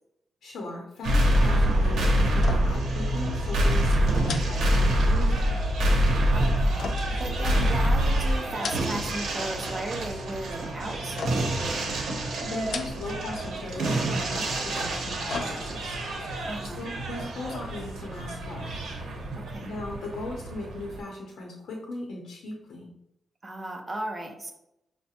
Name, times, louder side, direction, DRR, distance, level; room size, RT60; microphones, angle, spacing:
voice 1, 0.4-5.6 12.4-16.0 16.7-18.8 19.6-22.9, left 2 dB, 85° left, -1 dB, 0.7 m, -38 dB
sound 1, 1.0-21.0, equal, 85° right, 0.8 m, -26 dB
sound 2, 2.4-2.9 3.2-3.3 4.2-5.3 6.8-7.9 8.4-9.2 9.5-10.1 11.2-11.7 12.5-13.3 13.6-13.7 14.8-16.0 16.4-16.5, left 5 dB, 65° left, 0.3 m, -38 dB
voice 2, 6.3-11.8 16.5-16.9 19.3-19.7 23.4-24.5, right 1 dB, 25° right, 2 dB, 0.6 m, -36 dB
5.6 x 2.1 x 2.8 m, 0.82 s
wide cardioid pair, 140°, 0 cm